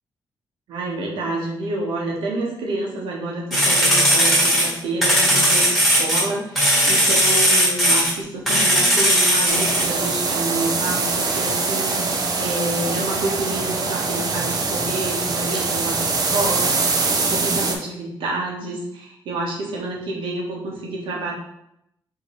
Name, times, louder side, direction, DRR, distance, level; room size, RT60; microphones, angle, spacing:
voice 1, 0.7-21.3, right 2 dB, 90° right, -2 dB, 1.3 m, -28 dB
sound 1, 3.5-6.2 6.5-8.1 8.5-9.9, equal, ahead, 1.7 m, -17 dB
sound 2, 9.5-17.8, right 4 dB, 50° right, 0.7 m, -23 dB
5.1 x 3.1 x 3.2 m, 0.80 s
cardioid pair, 110°, 8 cm